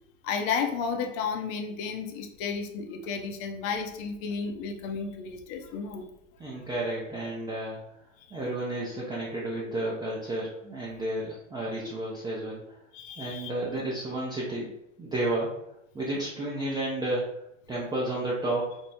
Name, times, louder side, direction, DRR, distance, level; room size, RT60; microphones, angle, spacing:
voice 1, 0.2-6.1 8.3-8.4 12.9-13.5, left 5 dB, 45° left, 5 dB, 0.7 m, -32 dB
voice 2, 6.4-7.8 8.3-12.8 13.2-14.7 15.0-15.5 15.9-17.3 17.7-18.7, right 1 dB, 10° right, -5 dB, 0.6 m, -31 dB
3.6 x 2.1 x 4.1 m, 0.81 s
hypercardioid pair, 105°, 39 cm